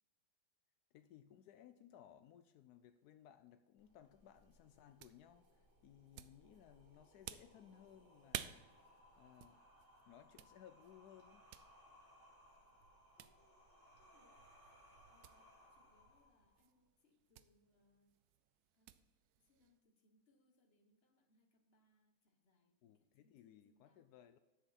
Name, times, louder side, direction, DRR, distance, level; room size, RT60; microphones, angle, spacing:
voice 1, 0.9-9.6 10.1-11.4 22.8-24.4, left 10 dB, 85° left, 0.8 m, -62 dB
sound 1, 3.8-16.8, equal, 25° right, 2.4 m, -67 dB
sound 2, 4.2-19.8, right 11 dB, 85° right, 0.8 m, -56 dB
voice 2, 13.2-14.5 15.1-18.2 18.7-24.1, left 1 dB, 35° left, 1.2 m, -77 dB
10.5 x 7.7 x 4.1 m
omnidirectional pair, 2.2 m